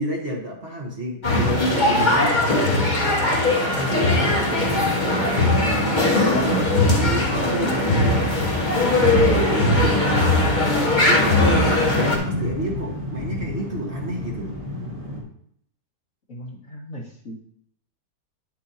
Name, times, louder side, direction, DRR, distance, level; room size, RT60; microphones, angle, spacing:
voice 1, 0.0-3.0 3.3-8.3 8.6-10.4 10.9-11.4 11.9-14.6, right 1 dB, 45° right, -1 dB, 1.7 m, -30 dB
sound 1, 1.2-12.2, left 2 dB, 30° left, 1.8 m, -20 dB
sound 2, 1.7-4.4 5.5-5.6 6.1-8.3 9.2-9.4 9.7-9.8 10.1-12.1, left 1 dB, 75° left, 3.3 m, -40 dB
sound 3, 4.6-15.2, left 1 dB, 60° right, 3.0 m, -31 dB
voice 2, 16.3-17.5, equal, 55° left, -2 dB, 2.3 m, -38 dB
9.9 x 7.4 x 2.8 m, 0.66 s
omnidirectional pair, 1.6 m